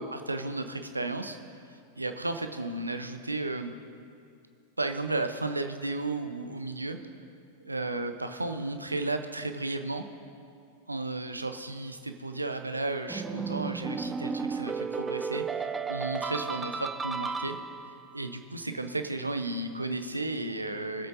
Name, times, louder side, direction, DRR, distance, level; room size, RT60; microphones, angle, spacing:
voice 1, 0.0-1.4 1.7-3.7 4.8-7.0 7.6-10.0 10.9-17.6 18.1-21.1, right 2 dB, 80° right, 7 dB, 0.7 m, -33 dB
sound 1, 13.1-18.0, right 5 dB, 15° right, 0.4 m, -33 dB
21.0 x 7.8 x 2.6 m, 2.4 s
figure-of-eight pair, 90°, 0 cm